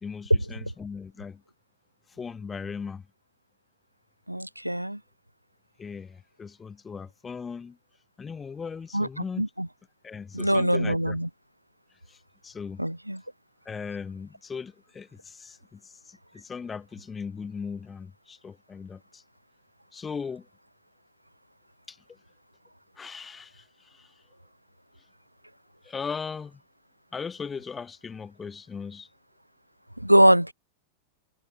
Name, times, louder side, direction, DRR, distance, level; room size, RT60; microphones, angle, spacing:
voice 1, 0.0-1.4 2.2-3.0 5.8-7.8 8.2-9.4 10.0-11.2 12.1-12.2 12.4-12.8 13.6-19.2 19.9-20.5 21.9-22.0 23.0-24.1 25.8-26.6 27.1-29.1, left 5 dB, 15° left, 1.7 m, -38 dB
voice 2, 4.3-5.0 8.9-9.1 9.4-9.7 10.3-11.3 12.8-13.2 30.0-30.5, equal, 90° right, 0.4 m, -22 dB
figure-of-eight pair, 90°, 0 cm